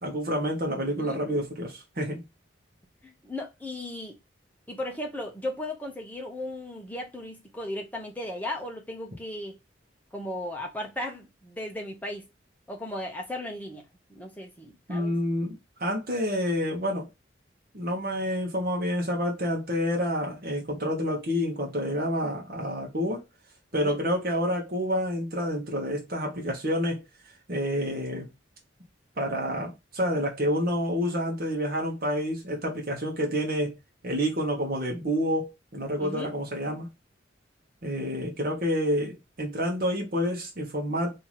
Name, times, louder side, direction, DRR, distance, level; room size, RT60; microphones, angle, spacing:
voice 1, 0.0-2.2 14.9-17.1 17.7-23.2 23.7-27.0 27.5-28.3 29.2-33.8 34.0-36.9 37.8-41.2, equal, 50° right, 1.2 m, -28 dB
voice 2, 0.9-1.2 3.0-4.2 4.7-9.6 10.1-12.3 12.7-13.8 14.1-15.1 23.7-24.0 36.0-36.3, left 1 dB, 10° left, 0.9 m, -36 dB
3.1 x 2.8 x 4.0 m
head